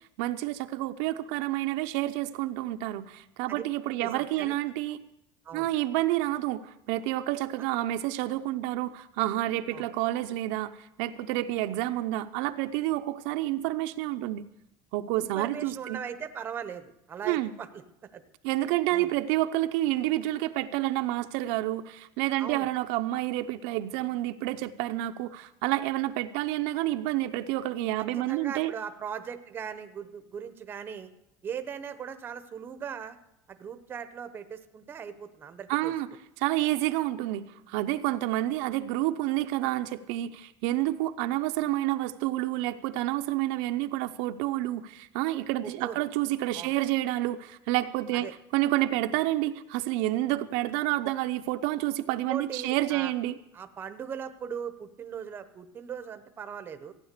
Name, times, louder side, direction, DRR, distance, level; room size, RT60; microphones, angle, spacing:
voice 1, 0.2-5.0 5.5-6.6 6.9-14.4 14.9-16.0 17.2-17.5 18.4-28.7 35.7-36.1 36.4-53.4, right 15 dB, 75° right, 8 dB, 0.7 m, -29 dB
voice 2, 4.0-4.5 5.4-5.7 9.7-9.9 15.1-17.8 18.1-18.2 18.9-19.1 22.4-22.7 28.0-31.1 31.4-33.2 33.5-35.9 45.6-46.0 46.5-46.7 48.1-48.3 52.1-53.1 53.5-56.9, right 7 dB, 20° right, 9 dB, 0.7 m, -39 dB
15.0 x 9.7 x 6.6 m, 0.84 s
cardioid pair, 175°, 10 cm